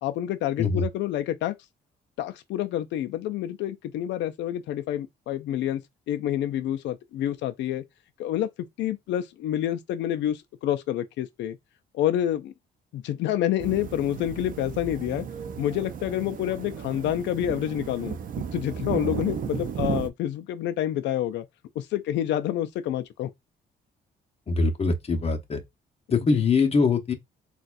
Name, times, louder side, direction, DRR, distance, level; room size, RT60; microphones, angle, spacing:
voice 1, 0.0-1.5 2.2-5.8 6.1-7.8 8.2-8.5 8.8-11.6 11.9-12.5 12.9-15.3 15.6-18.2 18.5-21.5 21.8-23.3 26.3-26.4, left 12 dB, 85° left, 0.4 m, -28 dB
sound 1, 13.6-20.1, right 7 dB, 50° right, 0.5 m, -34 dB
voice 2, 24.5-25.6 26.1-27.1, left 4 dB, 35° left, 0.9 m, -23 dB
4.0 x 2.3 x 2.4 m
cardioid pair, 95°, 18 cm